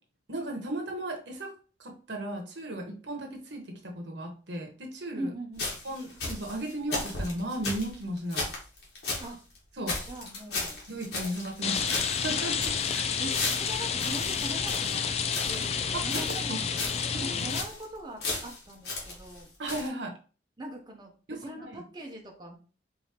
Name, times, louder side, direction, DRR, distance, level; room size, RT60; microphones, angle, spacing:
voice 1, 0.3-1.5 1.8-5.3 5.8-8.5 9.8-10.0 10.9-13.0 13.3-13.4 15.9-16.2 16.5-16.6 17.1-17.4 19.6-20.1 21.3-21.8, right 1 dB, 80° right, 2 dB, 1.1 m, -36 dB
voice 2, 5.2-5.7 9.2-9.4 10.0-10.8 13.2-15.0 15.4-16.7 17.2-19.5 20.6-22.6, right 1 dB, 25° right, 0 dB, 0.7 m, -41 dB
sound 1, 5.6-9.3 9.6-9.7 9.9-11.6 11.9-15.7 16.1-16.5 16.8-17.0 17.3-17.8 18.2-19.4 19.7-19.9, left 2 dB, 60° left, 1.5 m, -35 dB
Rain, 11.6-17.6, left 6 dB, 35° left, 0.3 m, -30 dB
4.7 x 2.7 x 2.9 m, 0.36 s
head